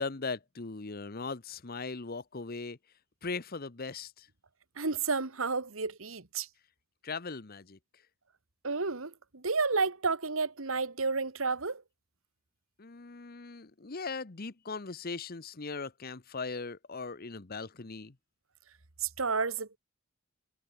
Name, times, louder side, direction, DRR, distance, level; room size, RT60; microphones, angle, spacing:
voice 1, 0.0-2.8 3.2-4.3 7.0-7.8 12.8-18.2, left 4 dB, 45° left, 1.0 m, -39 dB
voice 2, 4.8-6.5 8.6-11.8 19.0-19.8, right 4 dB, 75° right, 1.8 m, -31 dB
head